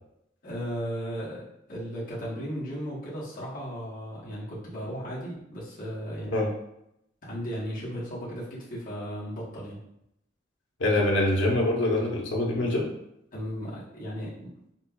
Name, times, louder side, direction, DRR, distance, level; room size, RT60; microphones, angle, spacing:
voice 1, 0.4-6.5 7.2-9.8 13.3-14.3, equal, 45° left, -9 dB, 1.1 m, -35 dB
voice 2, 10.8-12.9, left 1 dB, 75° left, -2 dB, 0.9 m, -24 dB
5.4 x 2.2 x 2.3 m, 0.79 s
head